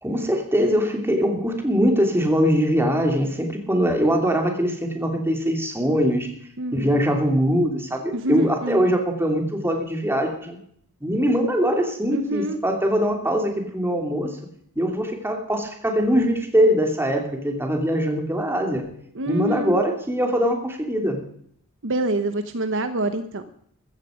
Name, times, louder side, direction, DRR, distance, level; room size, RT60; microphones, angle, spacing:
voice 1, 0.0-6.3 6.7-10.6 11.0-14.4 14.8-18.8 19.3-21.2, equal, 10° right, 3 dB, 2.8 m, -22 dB
voice 2, 6.6-7.0 8.1-8.9 12.1-12.6 19.1-19.8 21.8-23.4, right 1 dB, 60° right, 10 dB, 1.1 m, -26 dB
15.0 x 14.0 x 5.1 m, 0.66 s
head